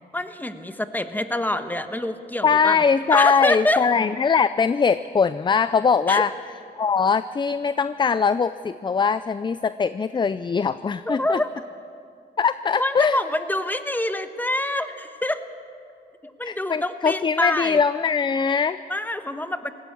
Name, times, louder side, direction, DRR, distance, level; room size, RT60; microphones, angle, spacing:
voice 1, 0.1-2.8 3.1-3.9 6.1-6.2 11.1-11.5 12.8-15.4 16.2-17.8 18.9-19.7, left 1 dB, 10° left, 9 dB, 1.2 m, -26 dB
voice 2, 2.4-6.3 6.8-11.4 12.4-13.2 16.4-18.8, left 5 dB, 25° left, 14 dB, 0.4 m, -21 dB
19.0 x 16.0 x 8.6 m, 2.4 s
cardioid pair, 80°, 18 cm